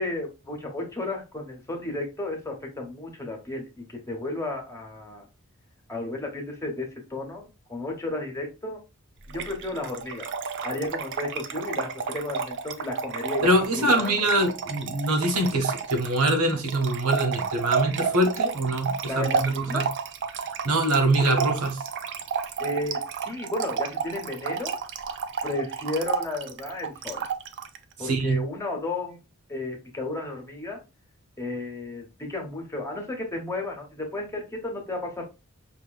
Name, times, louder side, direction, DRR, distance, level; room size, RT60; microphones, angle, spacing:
voice 1, 0.0-5.3 5.9-8.8 9.3-10.3 10.6-14.3 19.1-19.8 22.6-24.8 25.4-27.2 28.0-29.2 29.5-30.8 31.4-35.2, left 2 dB, 15° left, 1.0 m, -33 dB
Trickle dribble / Fill (with liquid), 9.3-27.8, right 6 dB, 55° right, 0.5 m, -31 dB
voice 2, 13.4-19.9 20.6-21.8 28.0-28.4, right 1 dB, 80° right, 1.1 m, -24 dB
5.5 x 2.9 x 2.3 m
head